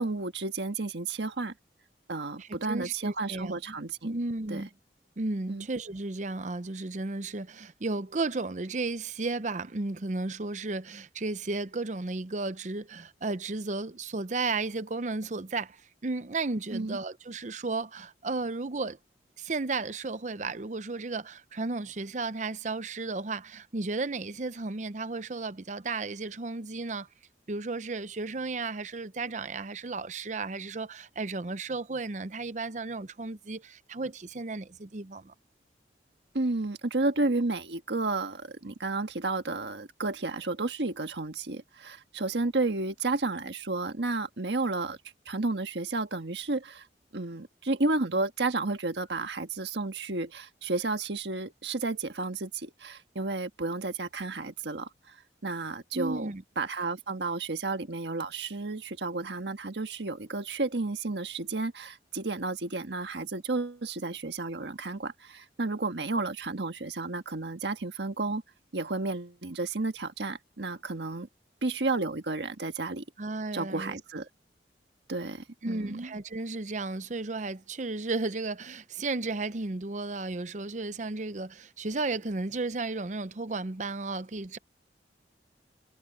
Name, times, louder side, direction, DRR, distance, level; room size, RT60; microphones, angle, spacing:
voice 1, 0.0-1.5 2.1-4.1 4.5-4.6 5.5-5.7 16.7-17.0 36.3-45.0 45.2-46.9 47.1-55.2 55.4-56.3 56.6-68.4 68.7-71.3 71.6-73.0 73.5-74.3 75.1-76.1, right 3 dB, 80° right, 1.5 m, -32 dB
voice 2, 2.4-3.6 4.0-4.7 5.2-19.0 19.4-27.1 27.5-35.3 55.9-56.4 73.2-74.0 75.6-84.6, right 3 dB, 40° right, 0.7 m, -34 dB
head